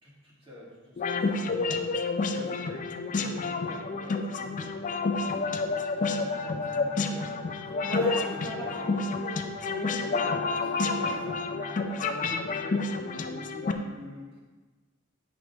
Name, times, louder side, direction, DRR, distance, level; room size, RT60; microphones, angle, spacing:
voice 1, 0.0-1.8 2.3-7.3 7.9-9.0 10.1-10.6 11.0-11.3 11.9-12.8 13.1-14.4, left 1 dB, 25° right, -6 dB, 1.8 m, -46 dB
sound 1, 1.0-13.7, left 3 dB, 35° left, 0.4 m, -29 dB
voice 2, 2.2-2.5 7.8-9.4 9.6-11.2 11.7-11.9, right 1 dB, 75° right, -3 dB, 1.2 m, -40 dB
Wind instrument woodwind instrument, 5.9-12.1, left 4 dB, 55° right, 2.4 m, -45 dB
8.6 x 5.0 x 3.4 m, 1.3 s
head